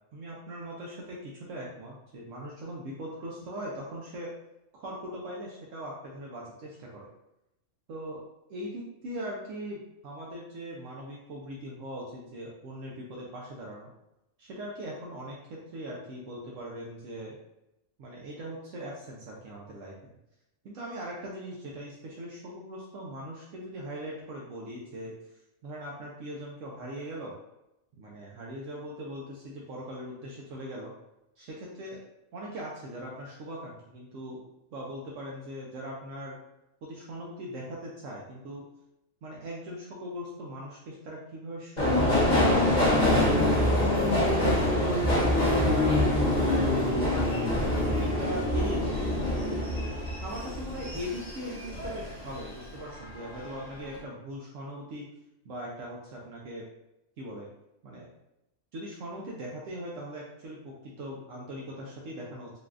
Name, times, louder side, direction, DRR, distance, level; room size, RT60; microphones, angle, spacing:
voice 1, 0.1-4.3 4.7-7.1 7.9-8.2 8.5-13.9 14.4-17.4 18.0-20.1 20.6-25.1 25.6-27.3 28.0-30.9 31.4-32.0 32.3-34.4 34.7-36.4 36.8-38.6 39.2-45.0 45.3-46.0 46.3-49.3 50.2-55.1 55.4-56.7 57.2-57.5 57.8-58.1 58.7-62.5, equal, 75° right, -3 dB, 1.0 m, -40 dB
Subway metro underground, 41.8-52.5 52.8-53.6 53.8-54.0, left 1 dB, 35° left, 1.1 m, -25 dB
4.0 x 2.3 x 2.4 m, 0.87 s
omnidirectional pair, 1.4 m